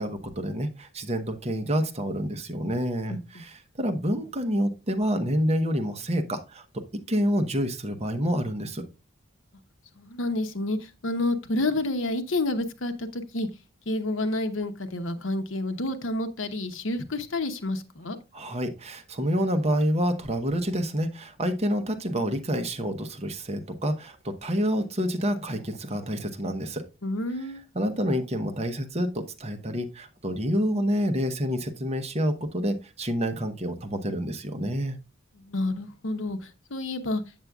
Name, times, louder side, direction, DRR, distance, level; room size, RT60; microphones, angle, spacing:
voice 1, 0.0-6.6 7.1-8.9 18.3-26.8 27.7-35.0, equal, 30° right, 0.9 m, -28 dB
voice 2, 3.1-3.4 10.0-13.5 13.9-18.2 27.0-27.6 35.4-37.2, left 2 dB, 75° left, 0.9 m, -29 dB
8.0 x 7.5 x 2.3 m
head